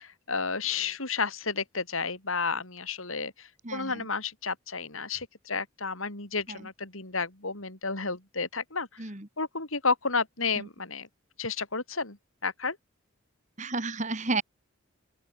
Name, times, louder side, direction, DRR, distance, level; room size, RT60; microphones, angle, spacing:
voice 1, 0.0-8.9 9.4-11.1 11.4-12.2 12.4-12.8, left 4 dB, 75° left, 5.0 m, -31 dB
voice 2, 3.6-4.1 6.5-6.7 9.0-9.3 10.6-10.7 13.6-14.4, right 3 dB, 35° right, 2.4 m, -32 dB
open air
head